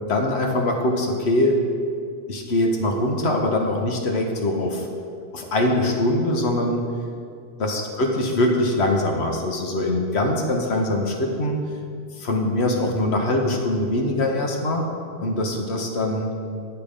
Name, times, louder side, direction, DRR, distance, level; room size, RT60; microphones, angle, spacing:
voice 1, 0.1-1.6 2.3-4.9 5.3-6.8 7.6-11.6 12.1-14.8 15.2-16.3, left 1 dB, 80° left, 1 dB, 1.4 m, -22 dB
9.3 x 9.0 x 5.1 m, 2.3 s
omnidirectional pair, 1.1 m